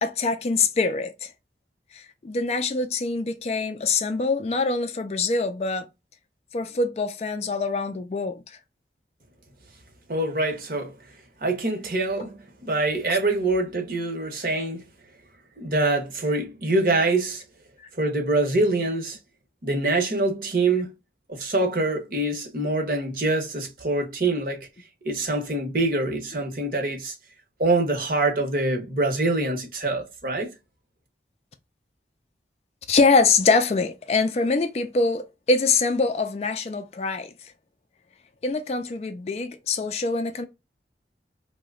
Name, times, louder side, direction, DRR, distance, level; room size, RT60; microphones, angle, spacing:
voice 1, 0.0-1.3 1.9-5.9 6.5-8.6 12.2-12.3 13.1-13.2 32.9-37.3 38.4-40.4, left 4 dB, 35° left, 0.3 m, -24 dB
voice 2, 10.1-10.9 11.4-14.9 15.6-17.4 18.0-19.2 19.6-20.9 21.3-24.7 25.0-27.1 27.6-30.5, right 2 dB, 50° right, 0.8 m, -25 dB
2.8 x 2.1 x 3.5 m
head